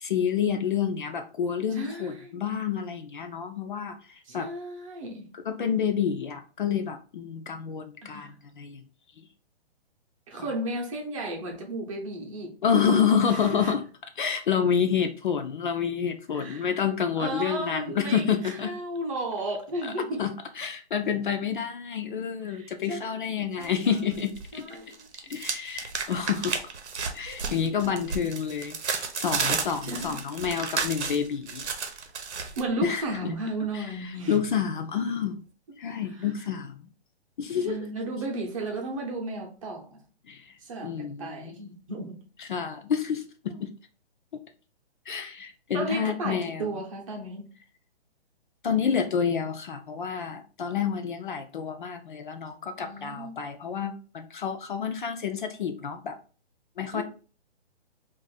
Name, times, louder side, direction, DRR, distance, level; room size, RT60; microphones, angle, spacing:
voice 1, 0.0-4.0 4.3-4.5 5.4-8.8 9.2-9.3 12.6-13.9 14.2-18.7 19.8-19.9 20.2-24.6 25.3-26.6 27.1-31.7 32.8-33.3 33.7-33.9 34.3-35.4 35.8-36.9 37.4-37.8 40.3-40.5 40.8-41.6 42.4-43.2 43.6-43.7 45.1-46.7 48.6-56.2 56.8-57.0, left 7 dB, 50° left, 0.4 m, -28 dB
voice 2, 1.7-2.4 4.2-5.3 8.0-8.4 10.3-12.6 13.3-13.7 16.3-16.7 17.2-20.2 22.4-23.7 24.5-25.1 25.4-25.5 27.3-27.4 29.8-30.2 32.6-34.4 37.6-40.0 40.6-42.2 45.7-47.5 52.8-53.4 56.9-57.0, right 1 dB, 30° right, 0.7 m, -34 dB
sound 1, 23.6-24.5 24.8-32.6, right 5 dB, 85° right, 0.9 m, -32 dB
2.5 x 2.5 x 3.9 m
hypercardioid pair, 160°, 33 cm